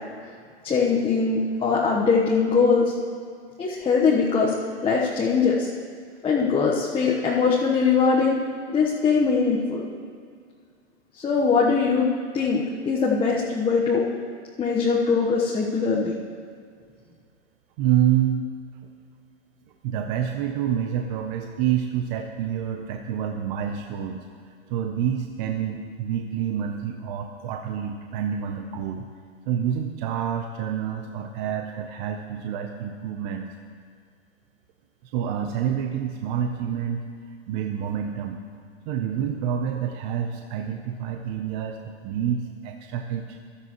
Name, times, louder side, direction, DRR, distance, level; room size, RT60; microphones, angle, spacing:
voice 1, 0.6-2.9 3.6-4.5 4.8-5.7 6.2-8.4 8.7-9.8 11.1-12.1 12.3-14.0 14.6-16.1, left 5 dB, 15° left, -4 dB, 1.1 m, -21 dB
voice 2, 17.8-18.4 19.8-29.1 29.5-33.5 35.1-37.1 37.5-38.4 38.9-43.4, right 9 dB, 40° right, 4 dB, 0.8 m, -28 dB
15.5 x 12.5 x 3.1 m, 2.1 s
hypercardioid pair, 115°, 35 cm